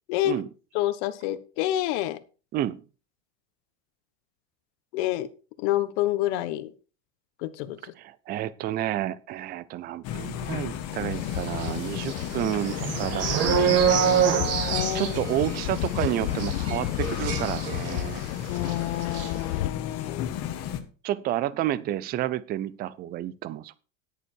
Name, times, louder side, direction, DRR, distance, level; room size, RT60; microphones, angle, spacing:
voice 1, 0.1-0.4 0.7-2.2 4.9-5.3 5.6-6.7 7.4-7.8 14.7-15.1 18.5-20.4, left 14 dB, 60° left, 13 dB, 1.3 m, -28 dB
voice 2, 8.0-14.3 14.9-18.2 21.0-23.8, right 13 dB, 25° right, 18 dB, 0.5 m, -30 dB
sound 1, 10.0-20.8, left 10 dB, 40° left, 1.6 m, -34 dB
sound 2, 10.9-19.7, left 16 dB, 85° left, 0.7 m, -33 dB
sound 3, 11.5-18.3 18.5-18.7 19.0-19.3, right 8 dB, 40° right, 2.2 m, -27 dB
10.0 x 9.2 x 4.4 m, 0.35 s
supercardioid pair, 140°, 38 cm